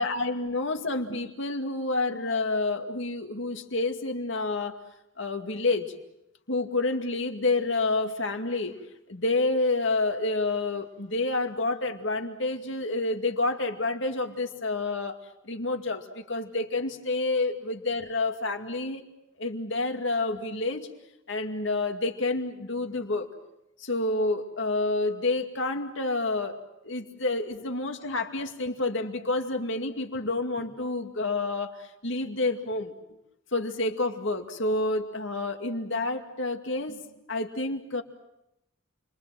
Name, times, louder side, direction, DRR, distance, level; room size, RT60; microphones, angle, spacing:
voice 1, 0.0-4.8 5.2-5.9 6.5-8.8 9.1-15.2 15.4-19.1 19.4-20.9 21.3-23.3 23.8-26.6 26.8-32.9 33.5-38.0, left 2 dB, 65° left, 5 dB, 2.3 m, -29 dB
29.5 x 23.5 x 7.8 m, 0.85 s
head